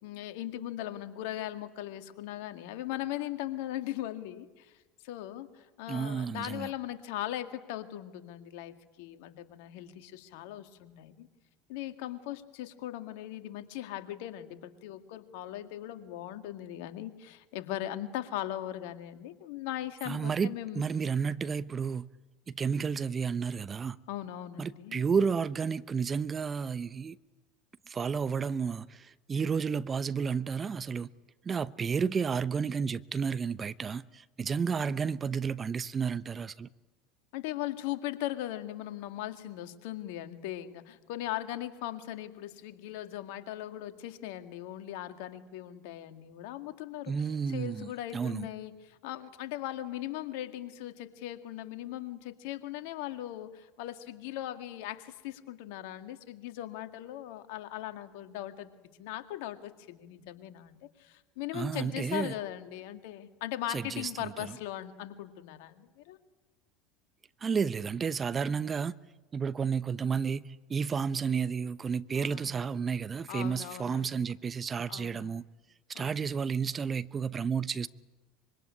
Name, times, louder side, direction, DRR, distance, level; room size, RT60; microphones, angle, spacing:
voice 1, 0.0-4.7 5.0-11.3 11.7-20.8 24.1-25.0 34.7-35.0 37.3-47.1 47.5-58.7 59.0-66.2 72.2-72.6 73.3-74.1 74.9-75.3 75.9-76.3, left 13 dB, 70° left, 2.0 m, -39 dB
voice 2, 5.9-6.7 20.1-22.1 22.5-24.0 24.6-27.2 27.9-31.1 31.4-36.7 47.1-48.5 61.5-62.3 63.7-64.5 67.4-68.9 69.3-75.4 75.9-77.9, right 6 dB, 30° right, 0.9 m, -31 dB
25.0 x 23.5 x 9.9 m
hypercardioid pair, 80°, 0 cm